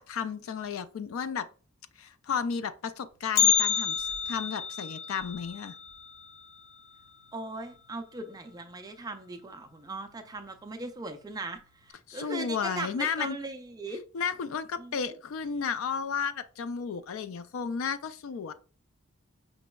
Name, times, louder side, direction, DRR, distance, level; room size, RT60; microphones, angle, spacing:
voice 1, 0.0-1.5 2.0-5.7 12.1-13.4 14.1-18.5, left 6 dB, 70° left, 0.3 m, -33 dB
Bell, 3.4-7.4 7.7-7.8 8.3-8.4 9.2-9.3 10.1-10.3 10.7-10.8, left 8 dB, 45° left, 0.7 m, -29 dB
voice 2, 7.3-14.0 14.8-14.9, right 2 dB, 20° right, 0.3 m, -39 dB
5.1 x 3.0 x 2.3 m
head